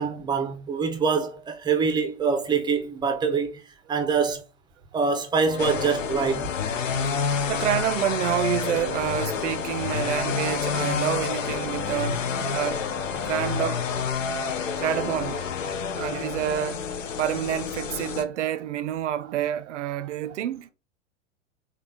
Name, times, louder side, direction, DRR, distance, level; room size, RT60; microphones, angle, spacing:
voice 1, 0.0-3.6 3.9-4.4 4.9-6.4, right 5 dB, 10° right, 0.5 m, -24 dB
Organ, 5.4-16.2, left 7 dB, 65° left, 1.1 m, -38 dB
sound 1, 5.6-18.2, left 6 dB, 80° left, 0.6 m, -29 dB
voice 2, 7.5-12.8 13.1-13.8 14.8-15.4 16.0-16.8 17.2-20.7, right 11 dB, 70° right, 0.5 m, -28 dB
3.1 x 2.3 x 3.7 m
figure-of-eight pair, 95°, 38 cm